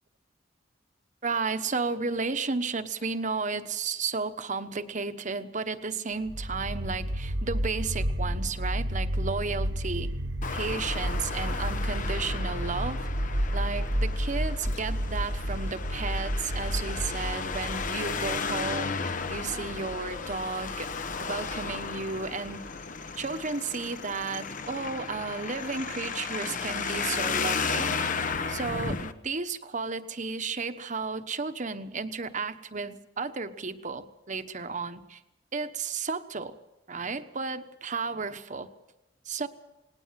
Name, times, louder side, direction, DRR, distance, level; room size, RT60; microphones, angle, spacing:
voice 1, 1.2-10.1 10.5-13.1 13.5-20.9 21.2-22.6 23.2-28.0 28.5-35.2 35.5-36.5 36.9-38.7 39.2-39.5, right 4 dB, 45° right, 10 dB, 1.1 m, -33 dB
sound 1, 6.2-23.3, equal, 80° right, 1.9 m, -32 dB
Traffic noise roadway noise, 10.4-29.1, left 5 dB, 45° left, 1.1 m, -34 dB
19.0 x 18.5 x 7.6 m, 0.94 s
head